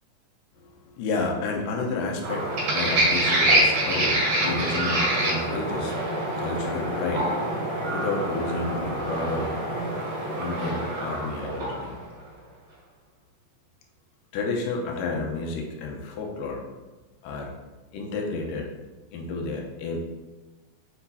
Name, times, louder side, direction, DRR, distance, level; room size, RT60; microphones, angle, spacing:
voice 1, 0.6-9.6 10.4-12.0 14.3-16.6 17.2-17.5 17.9-18.7 19.1-20.0, left 3 dB, 90° left, 1 dB, 2.5 m, -31 dB
sound 1, 2.2-12.0, right 1 dB, 80° right, 3.8 m, -26 dB
sound 2, 6.0-10.2, equal, 60° right, 1.7 m, -37 dB
8.3 x 5.0 x 2.7 m, 1.2 s
omnidirectional pair, 3.8 m